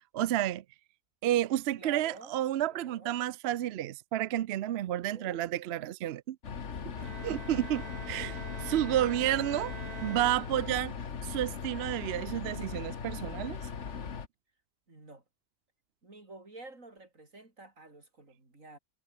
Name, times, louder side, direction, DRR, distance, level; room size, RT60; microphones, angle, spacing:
voice 1, 0.1-0.6 1.2-6.4 7.2-9.7 10.0-10.9 11.2-13.6, right 12 dB, 65° right, 0.7 m, -31 dB
voice 2, 1.8-2.4 2.7-3.2 5.1-5.4 14.9-15.2 16.0-18.8, right 2 dB, 90° right, 5.3 m, -50 dB
sound 1, 6.4-14.3, left 6 dB, 65° left, 1.7 m, -39 dB
Bowed string instrument, 7.0-11.0, right 5 dB, 35° right, 0.9 m, -46 dB
omnidirectional pair, 1.3 m